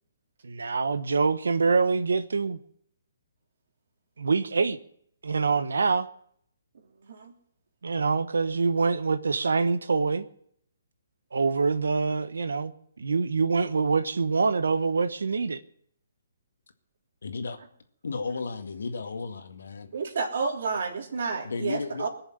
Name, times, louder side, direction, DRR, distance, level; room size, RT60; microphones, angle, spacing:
voice 1, 0.4-2.6 4.2-4.8 5.2-6.1 7.8-10.3 11.3-12.7 13.0-15.6, right 4 dB, 80° right, 1.0 m, -25 dB
voice 2, 17.2-17.6 18.0-19.9 21.4-22.1, left 4 dB, 75° left, 2.0 m, -34 dB
voice 3, 19.9-22.1, right 4 dB, 65° right, 3.2 m, -30 dB
20.5 x 7.1 x 9.1 m
hypercardioid pair, 140°, 0 cm